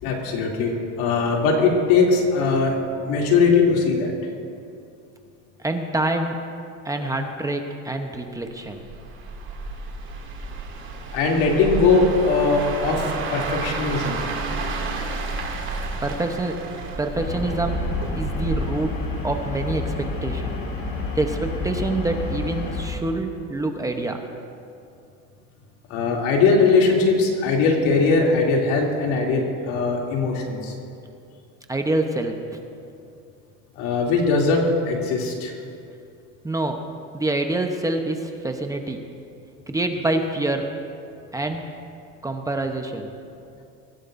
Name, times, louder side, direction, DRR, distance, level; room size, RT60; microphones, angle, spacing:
voice 1, 0.0-2.8 3.1-4.1 11.1-14.2 25.9-30.7 33.8-35.5, left 4 dB, 80° left, -1 dB, 2.9 m, -20 dB
voice 2, 5.6-6.4 6.8-8.8 16.0-16.6 17.0-17.8 18.1-19.0 19.2-20.6 21.1-24.2 31.7-32.6 36.4-36.9 37.1-39.0 39.7-40.8 41.3-41.6 42.2-43.1, right 2 dB, 10° right, 4 dB, 0.9 m, -26 dB
sound 1, 8.7-19.8 20.2-20.5, right 3 dB, 40° right, 2.5 m, -31 dB
sound 2, 17.2-22.9, left 3 dB, 45° left, 2.9 m, -29 dB
23.0 x 16.0 x 2.6 m, 2.5 s
cardioid pair, 135°, 31 cm